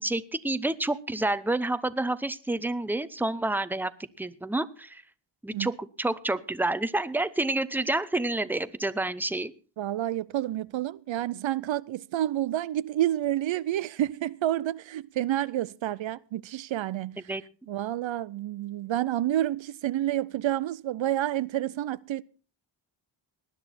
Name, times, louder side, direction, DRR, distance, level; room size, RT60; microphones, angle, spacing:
voice 1, 0.0-3.9 4.2-5.0 5.4-9.5 17.3-17.4, right 2 dB, 5° right, 0.8 m, -29 dB
voice 2, 9.8-17.2 17.7-22.2, right 13 dB, 70° right, 0.6 m, -29 dB
19.0 x 10.5 x 4.2 m
cardioid pair, 60°, 47 cm